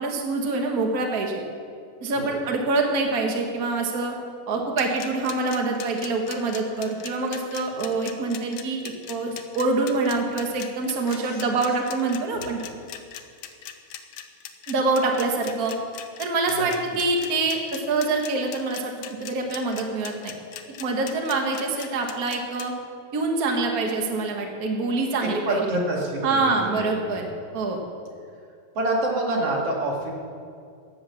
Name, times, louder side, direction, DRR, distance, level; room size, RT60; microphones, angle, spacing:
voice 1, 0.0-1.4 2.0-4.2 4.5-8.8 9.1-12.6 14.7-15.8 16.2-18.9 19.2-20.3 20.8-22.7 23.1-25.6 26.2-27.3 27.5-27.8, right 3 dB, 75° right, 2 dB, 0.8 m, -25 dB
sound 1, 4.8-22.7, left 11 dB, 70° left, 2.2 m, -39 dB
voice 2, 11.1-11.4 16.5-16.7 25.4-26.8 28.7-30.1, right 2 dB, 45° right, -2 dB, 2.9 m, -27 dB
17.5 x 8.0 x 7.1 m, 2.4 s
omnidirectional pair, 4.2 m